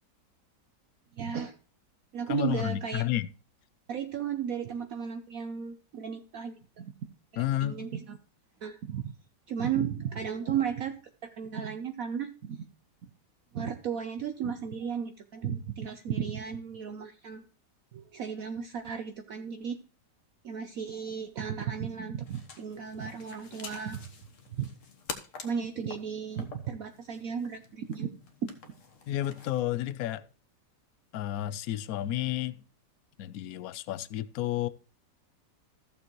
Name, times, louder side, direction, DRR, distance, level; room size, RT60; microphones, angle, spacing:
voice 1, 1.2-1.6 2.1-3.0 3.9-6.9 7.3-8.2 8.6-9.1 9.5-11.0 11.3-12.6 13.0-13.1 13.5-17.5 17.9-19.8 20.4-24.0 24.5-24.7 25.4-28.1 28.4-28.5, right 7 dB, 60° right, 1.0 m, -34 dB
voice 2, 2.3-3.3 7.4-7.8 29.1-30.3 31.1-32.6 33.2-34.7, left 13 dB, 70° left, 0.9 m, -31 dB
sound 1, 22.1-29.7, left 5 dB, 50° left, 1.4 m, -47 dB
14.5 x 6.9 x 3.1 m
omnidirectional pair, 1.9 m